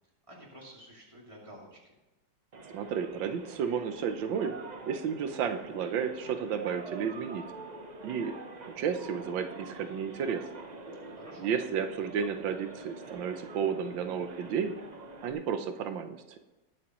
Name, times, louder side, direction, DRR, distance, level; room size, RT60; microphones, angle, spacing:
voice 1, 0.3-1.9 11.1-11.5, equal, 15° right, -3 dB, 2.7 m, -50 dB
sound 1, 2.5-15.3, right 3 dB, 45° right, 0.5 m, -46 dB
voice 2, 2.7-4.5 4.8-7.4 8.0-8.3 8.6-10.5 11.4-14.7 15.2-16.4, right 7 dB, 85° right, 8 dB, 1.6 m, -32 dB
20.0 x 7.6 x 3.1 m, 1.1 s
omnidirectional pair, 2.0 m